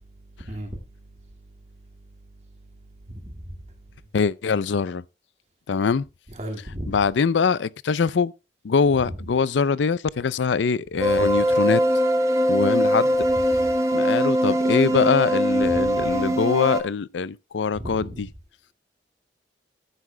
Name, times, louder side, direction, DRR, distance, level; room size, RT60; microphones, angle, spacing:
voice 1, 4.1-5.0 5.7-6.1 6.9-8.3 8.6-11.8 12.5-13.2 13.9-18.3, left 5 dB, 85° left, 0.5 m, -23 dB
voice 2, 6.4-6.9 9.0-9.1 15.7-16.1 17.8-18.2, equal, 35° right, 1.9 m, -34 dB
sound 1, 11.0-16.8, equal, 15° right, 1.0 m, -21 dB
15.5 x 9.9 x 2.2 m
head